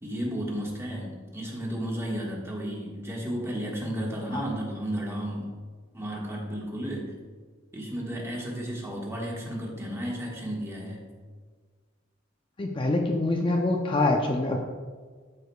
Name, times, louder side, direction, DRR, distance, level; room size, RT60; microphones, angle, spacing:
voice 1, 0.0-5.6 5.9-7.1 7.7-11.1, equal, 15° right, -3 dB, 1.4 m, -33 dB
voice 2, 12.6-14.6, left 2 dB, 25° left, 1 dB, 0.5 m, -25 dB
12.5 x 4.8 x 2.2 m, 1.5 s
head